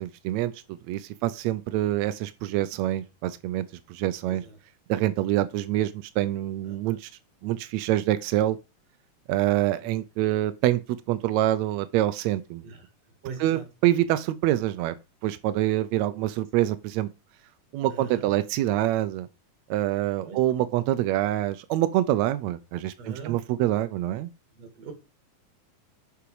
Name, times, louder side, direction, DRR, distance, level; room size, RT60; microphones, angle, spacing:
voice 1, 0.0-4.4 4.9-7.1 7.4-8.6 9.3-12.6 13.4-15.0 15.2-17.1 17.7-19.3 19.7-24.3, right 14 dB, 85° right, 1.6 m, -26 dB
voice 2, 13.2-13.6 17.9-18.3 20.2-20.4 23.0-23.4 24.6-24.9, right 5 dB, 55° right, 2.9 m, -40 dB
6.8 x 6.1 x 4.7 m
omnidirectional pair, 3.7 m